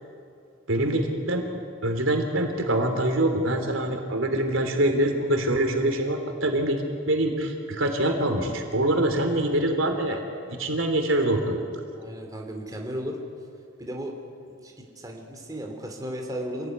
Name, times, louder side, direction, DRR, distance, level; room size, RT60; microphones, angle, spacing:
voice 1, 0.7-1.5 1.8-10.2 10.5-11.6, right 1 dB, 80° right, 4 dB, 3.4 m, -24 dB
voice 2, 11.9-13.2 13.8-14.1 14.5-16.7, equal, 20° right, 1 dB, 3.3 m, -35 dB
27.0 x 18.5 x 9.6 m, 2.4 s
head